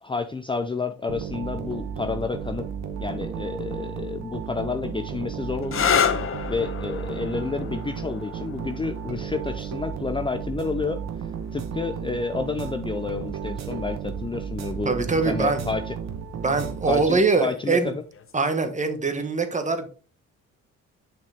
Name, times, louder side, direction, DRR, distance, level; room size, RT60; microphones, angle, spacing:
voice 1, 0.0-2.7 3.0-6.2 6.5-11.0 11.5-15.0 15.3-15.9 16.9-17.9, left 4 dB, 15° left, 7 dB, 0.5 m, -30 dB
sound 1, 1.1-17.5, right 7 dB, 65° right, 1.2 m, -34 dB
sound 2, 5.6-13.1 14.1-14.6 18.1-18.5, left 7 dB, 45° left, 0.9 m, -31 dB
voice 2, 14.8-15.6 16.3-17.9 18.3-19.9, right 4 dB, 25° right, 7 dB, 1.4 m, -23 dB
7.4 x 5.9 x 3.5 m, 0.39 s
cardioid pair, 90°, 30 cm